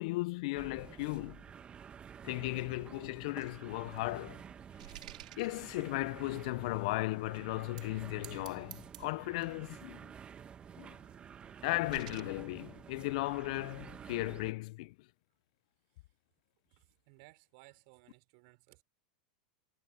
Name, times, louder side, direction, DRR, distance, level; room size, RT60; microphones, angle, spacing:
voice 1, 0.0-1.4 2.2-4.4 5.4-10.1 10.8-11.0 11.6-14.9, left 21 dB, 60° left, 0.7 m, -36 dB
sound 1, 0.6-14.5, right 7 dB, 25° right, 1.6 m, -51 dB
sound 2, 2.9-6.2 6.8-6.9 7.6-7.9 8.2-9.7 10.3-12.2, right 14 dB, 70° right, 4.7 m, -54 dB
voice 2, 16.7-18.8, right 29 dB, 55° right, 4.0 m, -60 dB
hypercardioid pair, 105°, 4 cm